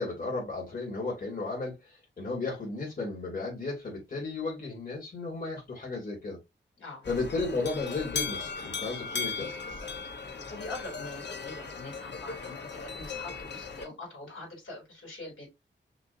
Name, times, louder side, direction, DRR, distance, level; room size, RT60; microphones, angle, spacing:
voice 1, 0.0-6.4 7.1-9.5, left 3 dB, 45° left, 2.6 m, -34 dB
sound 1, 7.0-13.9, left 5 dB, 60° left, 1.0 m, -37 dB
voice 2, 9.2-9.7 10.1-15.5, left 2 dB, 75° left, 3.3 m, -44 dB
5.9 x 2.9 x 2.7 m
cardioid pair, 85°, 20 cm